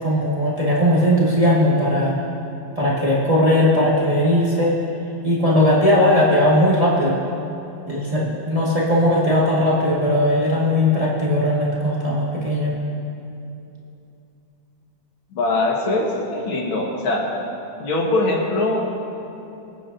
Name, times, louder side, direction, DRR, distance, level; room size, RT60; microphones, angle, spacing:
voice 1, 0.0-2.2 2.8-4.8 5.2-7.2 7.9-12.7, left 1 dB, 20° right, -7 dB, 1.9 m, -18 dB
voice 2, 15.3-17.2 17.8-18.8, left 2 dB, 80° left, -2 dB, 2.5 m, -22 dB
25.0 x 9.1 x 2.8 m, 2.7 s
omnidirectional pair, 2.2 m